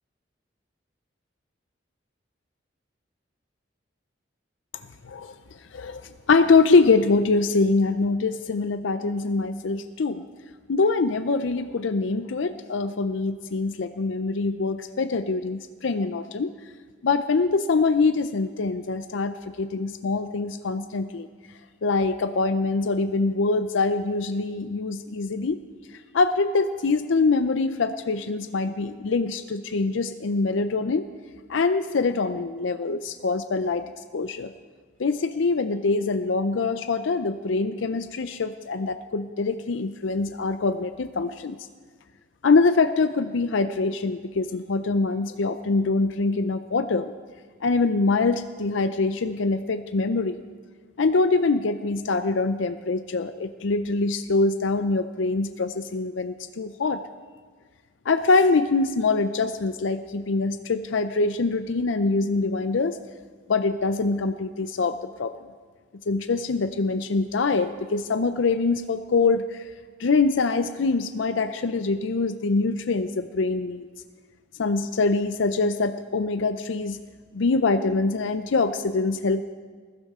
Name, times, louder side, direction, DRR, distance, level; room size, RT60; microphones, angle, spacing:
voice 1, 6.3-10.3 10.7-16.5 17.0-21.3 21.8-25.6 26.1-31.1 31.5-34.5 35.0-41.6 42.4-47.1 47.6-50.4 51.0-57.0 58.1-63.0 63.5-65.3 66.1-69.7 70.0-73.9 74.6-77.0 77.3-79.4, left 3 dB, 75° left, 10 dB, 0.5 m, -24 dB
20.5 x 15.0 x 3.7 m, 1.5 s
head